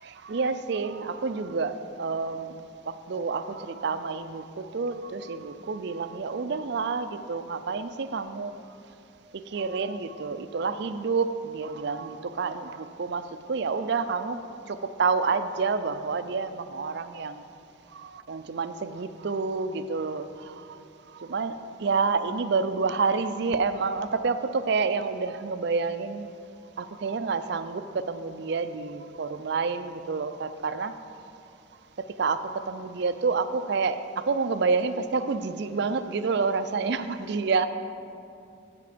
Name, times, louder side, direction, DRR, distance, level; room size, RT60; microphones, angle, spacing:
voice 1, 0.0-8.5 9.3-14.4 14.7-17.4 17.9-20.8 21.1-26.3 26.8-31.0 32.2-37.7, right 4 dB, 55° right, 11 dB, 0.4 m, -29 dB
15.0 x 5.1 x 5.0 m, 2.6 s
head